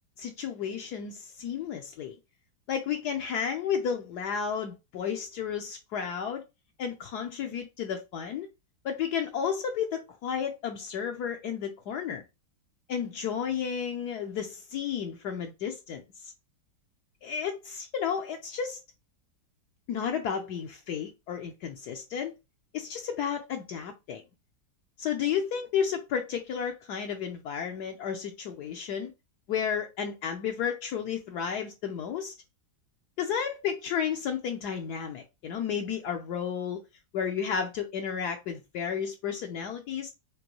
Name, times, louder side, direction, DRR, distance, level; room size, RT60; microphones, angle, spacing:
voice 1, 0.2-2.2 2.7-6.4 6.8-8.5 8.8-12.2 12.9-16.3 17.2-18.8 19.9-22.3 22.7-24.2 25.0-29.1 29.5-32.3 33.2-36.8 37.1-40.1, left 7 dB, 70° left, 1.2 m, -32 dB
5.2 x 2.6 x 2.9 m
omnidirectional pair, 1.9 m